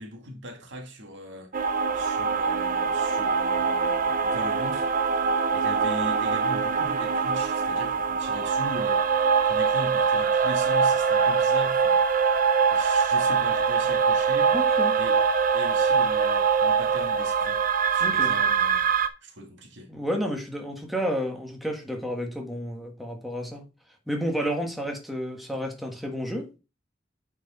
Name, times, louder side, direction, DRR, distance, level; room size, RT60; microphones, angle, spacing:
voice 1, 0.0-1.5 1.9-4.9 5.2-9.1 9.4-12.0 12.7-14.6 15.0-15.2 15.5-17.6 17.9-18.9 19.2-19.9, equal, 75° right, 1.9 m, -39 dB
sound 1, 1.5-19.1, right 6 dB, 50° right, 0.7 m, -23 dB
voice 2, 14.5-14.9 18.0-18.4 19.9-23.6 24.1-26.6, equal, ahead, 1.5 m, -31 dB
9.2 x 4.7 x 4.2 m
head